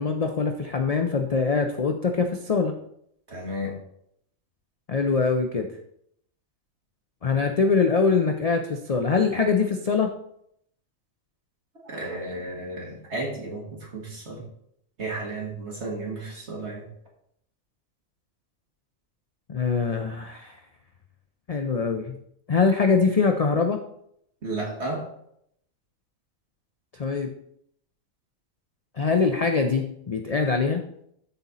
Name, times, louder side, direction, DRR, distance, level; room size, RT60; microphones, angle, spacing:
voice 1, 0.0-2.7 4.9-5.7 7.2-10.1 19.5-20.6 21.5-22.2 22.5-23.8 26.9-27.3 29.0-30.8, left 4 dB, 50° left, 4 dB, 0.4 m, -23 dB
voice 2, 3.3-3.8 11.8-14.4 15.0-16.8 24.4-25.1, right 2 dB, 55° right, -1 dB, 2.0 m, -33 dB
12.5 x 4.2 x 4.0 m, 0.72 s
omnidirectional pair, 1.4 m